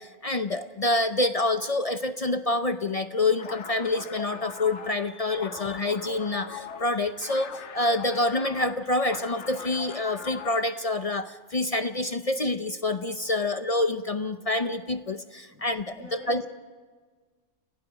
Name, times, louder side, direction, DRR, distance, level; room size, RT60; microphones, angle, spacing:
voice 1, 0.0-16.4, left 2 dB, 45° left, 9 dB, 0.5 m, -27 dB
sound 1, 3.3-10.8, left 6 dB, 60° left, 1.2 m, -40 dB
voice 2, 15.5-16.5, right 1 dB, 20° right, -5 dB, 4.5 m, -48 dB
29.0 x 18.0 x 5.0 m, 1.5 s
omnidirectional pair, 1.4 m